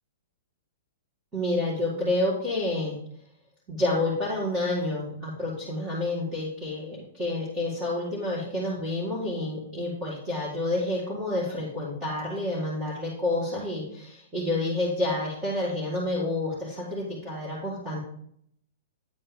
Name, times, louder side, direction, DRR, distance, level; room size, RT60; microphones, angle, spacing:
voice 1, 1.3-3.0 3.7-18.0, left 2 dB, 10° right, -8 dB, 2.0 m, -29 dB
9.3 x 4.3 x 5.2 m, 0.66 s
hypercardioid pair, 170°, 0 cm